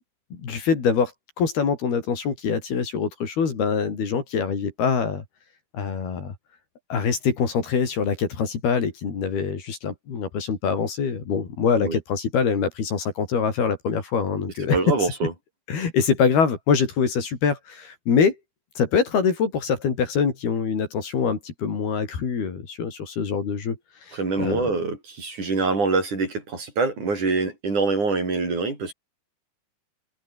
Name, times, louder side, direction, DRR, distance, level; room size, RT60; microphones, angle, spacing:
voice 1, 0.4-1.1 1.4-5.2 5.7-6.3 6.9-14.8 15.7-18.4 18.8-23.8 24.0-24.7, left 6 dB, 75° left, 6.4 m, -24 dB
voice 2, 14.7-15.3 24.1-28.9, right 4 dB, 50° right, 8.9 m, -25 dB
omnidirectional pair, 4.5 m